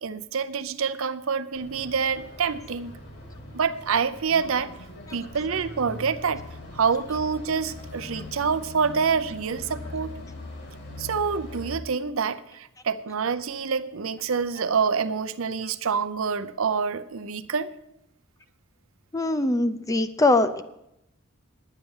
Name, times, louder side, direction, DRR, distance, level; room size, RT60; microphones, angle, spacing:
voice 1, 0.0-3.0 3.5-4.7 5.1-6.4 6.7-10.2 11.0-17.7, right 6 dB, 70° right, 11 dB, 0.6 m, -27 dB
sound 1, 1.5-11.8, left 1 dB, 50° left, 1.9 m, -41 dB
voice 2, 19.1-20.6, left 2 dB, 15° left, 10 dB, 0.5 m, -22 dB
10.0 x 9.2 x 7.1 m, 0.85 s
head